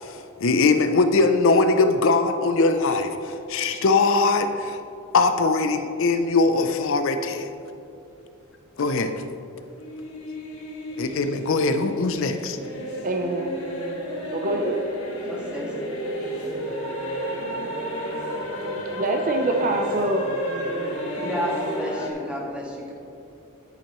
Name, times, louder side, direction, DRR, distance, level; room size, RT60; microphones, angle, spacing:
voice 1, 0.0-4.8 5.1-7.5 8.8-9.1 11.0-12.6, left 3 dB, 65° left, 8 dB, 0.5 m, -21 dB
sound 1, 9.7-22.1, equal, 90° left, 2.0 m, -32 dB
voice 2, 13.0-13.6 14.3-14.8 19.0-20.3, right 1 dB, 40° right, 4 dB, 0.6 m, -24 dB
voice 3, 15.2-15.7 21.2-22.9, equal, 5° right, -4 dB, 1.7 m, -31 dB
10.5 x 9.0 x 3.1 m, 2.7 s
head